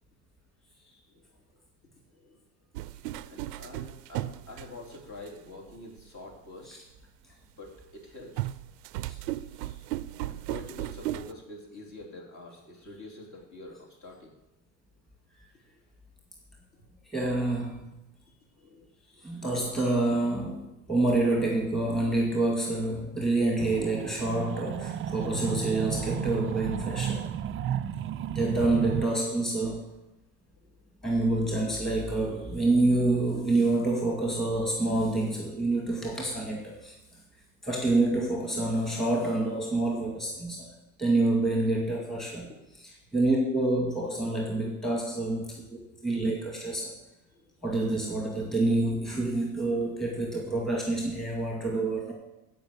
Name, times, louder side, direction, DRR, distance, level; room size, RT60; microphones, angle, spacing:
sound 1, 2.8-5.3 6.0-6.1 8.4-11.3, right 15 dB, 90° right, 0.6 m, -35 dB
voice 1, 3.3-6.8 7.6-8.5 9.5-9.6 10.3-14.3 15.7-15.8 18.5-19.2 20.9-21.0 28.1-28.2 30.6-30.8 42.4-42.6 47.3-47.4, left 2 dB, 35° left, -1 dB, 3.6 m, -46 dB
voice 2, 17.1-17.9 19.2-27.2 28.3-29.8 31.0-37.0 37.6-40.7 41.0-42.5 43.1-46.9 47.6-52.1, right 2 dB, ahead, -1 dB, 2.1 m, -27 dB
sound 2, 23.6-29.1, right 9 dB, 30° right, 0.4 m, -33 dB
15.5 x 5.5 x 6.9 m, 0.94 s
supercardioid pair, 105°, 46 cm